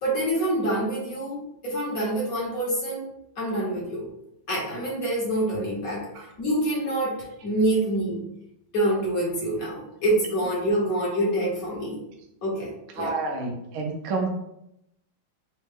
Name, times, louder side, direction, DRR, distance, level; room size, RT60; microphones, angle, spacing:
voice 1, 0.0-4.1 4.5-6.1 6.4-8.2 8.7-12.0 12.4-13.2, right 1 dB, 55° left, -6 dB, 1.3 m, -26 dB
voice 2, 12.9-14.3, right 3 dB, 75° right, 1 dB, 0.7 m, -29 dB
4.3 x 2.1 x 3.3 m, 0.83 s
omnidirectional pair, 2.2 m